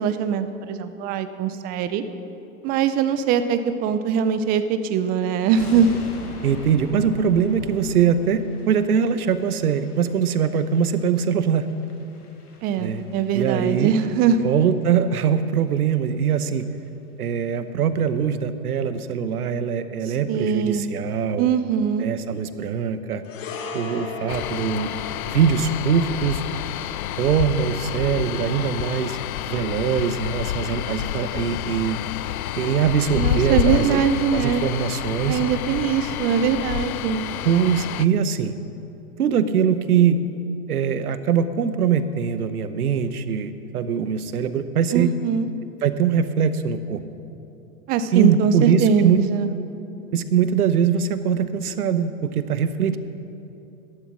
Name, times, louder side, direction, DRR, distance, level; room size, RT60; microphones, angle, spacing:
voice 1, 0.0-2.0 2.6-5.9 12.6-14.4 20.0-20.9 21.4-22.1 33.1-34.7 35.3-37.3 44.9-45.5 47.9-49.5, right 7 dB, 20° right, 11 dB, 0.5 m, -22 dB
sound 1, 5.5-14.7 15.0-15.2 15.6-15.7 15.9-16.0 16.3-16.6 16.9-17.0, left 1 dB, 90° left, 2.2 m, -42 dB
voice 2, 6.4-11.7 12.8-13.0 13.3-13.9 14.4-16.7 17.2-21.5 22.0-23.2 23.7-24.9 25.3-26.4 27.2-29.2 29.5-32.0 32.6-34.0 34.3-35.4 37.4-38.5 39.2-40.2 40.7-45.1 45.8-47.0 48.1-49.2 50.1-53.0, right 7 dB, 80° right, 12 dB, 1.0 m, -22 dB
sound 2, 23.2-31.7 32.0-32.2, left 4 dB, 55° left, 1.6 m, -39 dB
sound 3, 24.3-38.1, left 13 dB, 75° left, 0.5 m, -29 dB
14.0 x 11.0 x 6.2 m, 2.9 s
hypercardioid pair, 125°, 44 cm